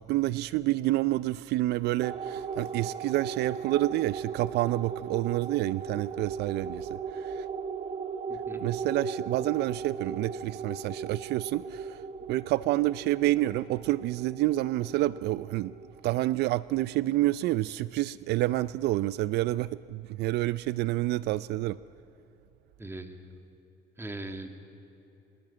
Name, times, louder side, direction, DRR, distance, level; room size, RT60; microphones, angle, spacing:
voice 1, 0.0-7.5 8.5-15.7 16.0-21.8, right 16 dB, 80° right, 17 dB, 0.5 m, -28 dB
sound 1, 2.0-16.8, right 6 dB, 35° right, 1.1 m, -38 dB
voice 2, 8.3-8.6 22.8-23.2 24.0-24.5, right 2 dB, 15° right, 6 dB, 2.4 m, -39 dB
24.0 x 21.5 x 8.8 m, 2.9 s
cardioid pair, 110°, 17 cm